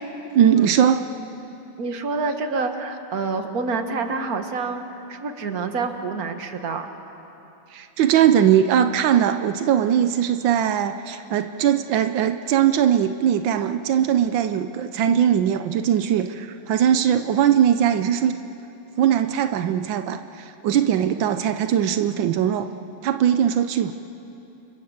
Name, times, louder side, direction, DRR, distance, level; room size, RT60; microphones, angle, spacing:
voice 1, 0.3-1.0 7.7-18.4 19.0-22.7 23.0-23.9, right 9 dB, 85° right, 8 dB, 1.5 m, -20 dB
voice 2, 1.8-4.8 5.1-6.9, right 4 dB, 50° right, 6 dB, 2.0 m, -27 dB
30.0 x 26.0 x 7.4 m, 2.9 s
omnidirectional pair, 2.0 m